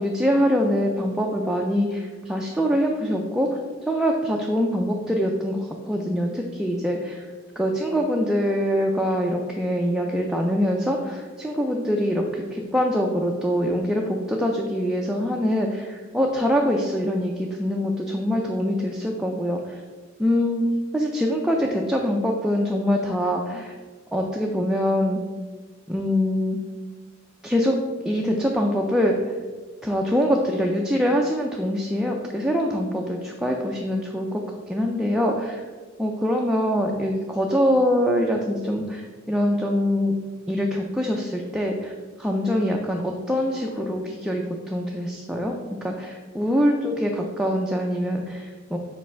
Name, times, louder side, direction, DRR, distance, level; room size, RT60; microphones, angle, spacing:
voice 1, 0.0-3.6 3.9-7.3 7.6-19.8 20.2-20.6 20.9-23.7 24.1-25.2 25.9-26.6 27.4-27.7 28.0-29.3 29.8-34.4 34.7-35.6 36.0-40.1 40.5-41.9 42.2-45.5 45.8-48.8, equal, 5° right, 0 dB, 0.4 m, -24 dB
5.3 x 3.3 x 5.5 m, 1.4 s
head